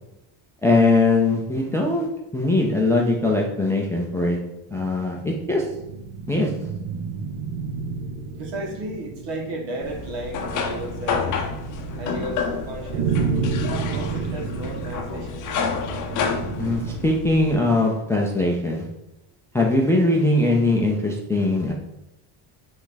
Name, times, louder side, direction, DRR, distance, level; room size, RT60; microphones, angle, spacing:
voice 1, 0.6-2.1 2.3-4.4 4.7-5.6 6.3-6.5 16.6-18.9 19.5-21.7, left 2 dB, 5° left, -1 dB, 0.3 m, -21 dB
sound 1, 4.9-17.5, right 5 dB, 45° right, 0.8 m, -31 dB
voice 2, 8.3-11.4 12.0-13.1 13.9-15.8, right 1 dB, 70° right, 1 dB, 1.8 m, -34 dB
sound 2, 9.8-17.6, left 5 dB, 40° left, 0.7 m, -29 dB
8.7 x 3.5 x 3.9 m, 0.92 s
cardioid pair, 175°, 47 cm